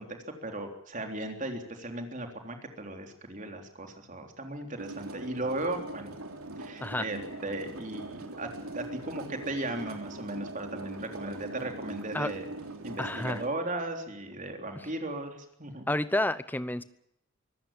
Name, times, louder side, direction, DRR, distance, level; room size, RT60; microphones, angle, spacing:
voice 1, 0.0-6.1 6.6-12.5 12.8-15.9, right 2 dB, 35° right, 4 dB, 3.5 m, -37 dB
sound 1, 4.8-13.5, right 2 dB, 90° right, 3.4 m, -42 dB
voice 2, 13.0-13.4 15.9-16.8, left 1 dB, 10° left, 14 dB, 0.8 m, -29 dB
24.5 x 15.0 x 8.7 m, 0.79 s
head